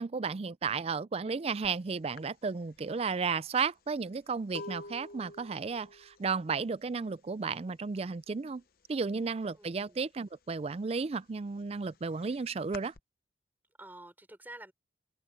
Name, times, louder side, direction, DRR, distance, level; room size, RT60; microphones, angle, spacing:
voice 1, 0.0-8.6 8.9-12.9, right 5 dB, 35° right, 0.4 m, -33 dB
sound 1, 1.6-1.8 2.2-8.6 8.9-10.0 10.4-13.0, left 2 dB, 55° left, 0.8 m, -49 dB
voice 2, 9.5-10.0 13.8-14.7, right 1 dB, 10° right, 4.3 m, -49 dB
head